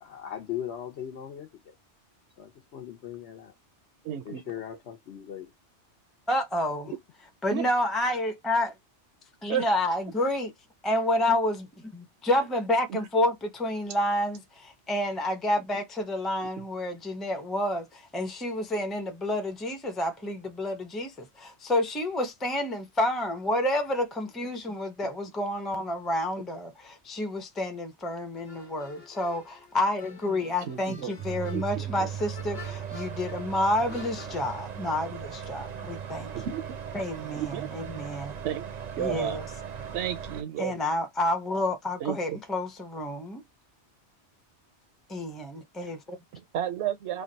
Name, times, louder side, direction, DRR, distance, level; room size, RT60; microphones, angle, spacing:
voice 1, 0.0-1.7 2.4-3.5 4.2-5.5, left 10 dB, 70° left, 1.1 m, -39 dB
voice 2, 4.0-4.4 7.5-7.6 9.5-9.6 12.9-13.1 30.7-31.1 31.5-32.1 36.3-36.6 37.4-37.7 38.4-38.7 39.0-39.4 39.9-40.7 42.0-42.4 46.3-47.2, right 10 dB, 75° right, 0.9 m, -32 dB
voice 3, 6.3-6.9 7.4-8.7 9.4-10.5 10.8-11.5 11.9-36.3 36.9-38.3 39.0-39.4 40.6-43.4 45.1-46.2, left 1 dB, ahead, 0.6 m, -29 dB
sound 1, 28.4-34.6, left 5 dB, 45° left, 1.1 m, -49 dB
sound 2, 31.2-40.4, right 8 dB, 50° right, 0.5 m, -38 dB
3.3 x 2.3 x 3.9 m
omnidirectional pair, 1.2 m